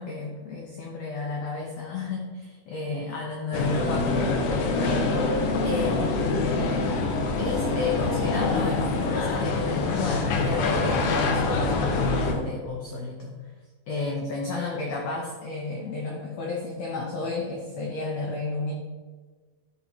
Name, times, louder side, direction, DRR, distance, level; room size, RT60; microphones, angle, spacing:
voice 1, 0.0-5.1 5.6-6.5 7.4-13.4 13.9-18.7, left 3 dB, 85° left, -1 dB, 1.5 m, -31 dB
sound 1, 3.5-12.3, left 3 dB, 70° left, 1.9 m, -25 dB
12.0 x 4.1 x 4.3 m, 1.4 s
omnidirectional pair, 4.4 m